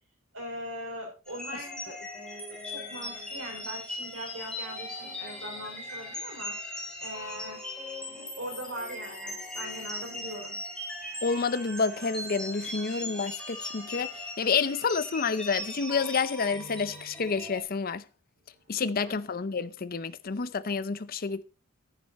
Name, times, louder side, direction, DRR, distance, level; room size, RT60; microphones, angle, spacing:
voice 1, 0.3-2.0 2.5-6.5 7.0-7.6 8.1-10.6 18.8-19.2, right 1 dB, 70° right, 5.4 m, -41 dB
sound 1, 1.3-17.6, left 1 dB, 5° left, 3.4 m, -39 dB
voice 2, 11.2-14.1 14.4-18.0 18.7-21.4, left 5 dB, 45° left, 0.6 m, -29 dB
10.5 x 9.4 x 4.2 m
head